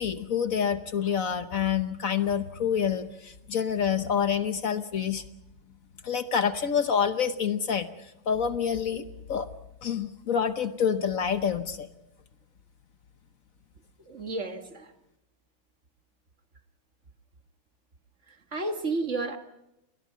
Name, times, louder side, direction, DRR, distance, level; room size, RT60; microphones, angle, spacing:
voice 1, 0.0-5.2 6.0-9.5 9.8-11.9, left 7 dB, 50° left, 10 dB, 1.2 m, -27 dB
voice 2, 14.0-14.9 18.3-19.4, right 3 dB, 40° right, 6 dB, 1.7 m, -32 dB
29.5 x 20.5 x 5.7 m, 0.86 s
omnidirectional pair, 2.1 m